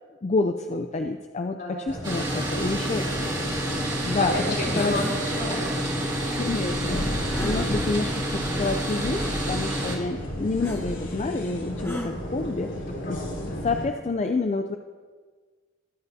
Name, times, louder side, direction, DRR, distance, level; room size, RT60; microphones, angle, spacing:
voice 1, 0.2-3.0 4.0-4.3 4.8-4.9 6.3-12.7 13.1-13.2 13.6-14.8, left 3 dB, 35° left, 6 dB, 0.4 m, -28 dB
voice 2, 1.6-2.0 2.3-5.8 10.1-10.2 12.3-13.7, left 1 dB, 60° left, -5 dB, 3.4 m, -34 dB
sound 1, 1.9-13.9, equal, 85° left, 2.7 m, -34 dB
sound 2, 2.0-10.0, right 1 dB, 20° right, 2.0 m, -29 dB
sound 3, 4.7-5.2 7.3-8.0 8.7-8.8 10.6-10.8 11.8-12.1, equal, 10° left, 0.9 m, -34 dB
21.0 x 8.2 x 2.7 m, 1.5 s
head